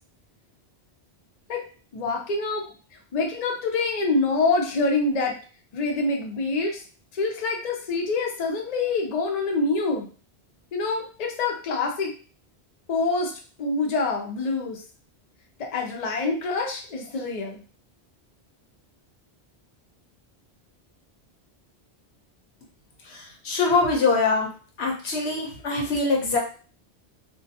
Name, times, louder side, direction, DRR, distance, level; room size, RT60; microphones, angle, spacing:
voice 1, 1.9-2.7 3.1-5.4 5.7-6.8 7.1-10.1 10.7-12.1 12.9-13.3 13.6-14.8 15.7-17.6, left 3 dB, 50° left, 1 dB, 0.6 m, -26 dB
voice 2, 23.0-24.5 24.8-26.4, left 3 dB, 85° left, 0 dB, 1.0 m, -23 dB
2.3 x 2.2 x 2.7 m, 0.39 s
omnidirectional pair, 1.1 m